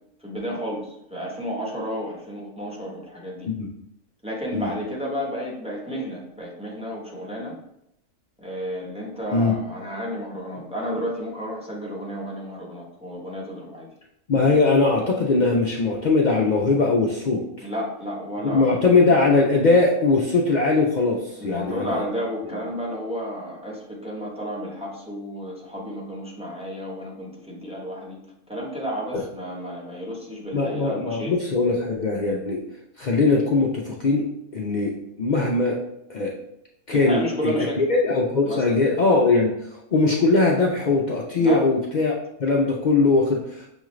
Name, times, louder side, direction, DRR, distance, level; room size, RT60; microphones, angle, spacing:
voice 1, 0.2-3.5 4.2-7.5 8.4-13.9 17.6-18.8 21.4-28.2 28.5-31.3 36.9-37.8 38.5-38.6 41.4-41.7, equal, 5° right, -4 dB, 0.7 m, -31 dB
voice 2, 14.3-17.7 18.5-22.0 29.1-29.2 30.5-32.6 33.0-34.2 34.5-35.8 36.1-36.3 36.9-42.1 42.4-43.7, left 3 dB, 65° left, -2 dB, 0.4 m, -21 dB
6.1 x 2.4 x 3.0 m, 0.79 s
omnidirectional pair, 1.4 m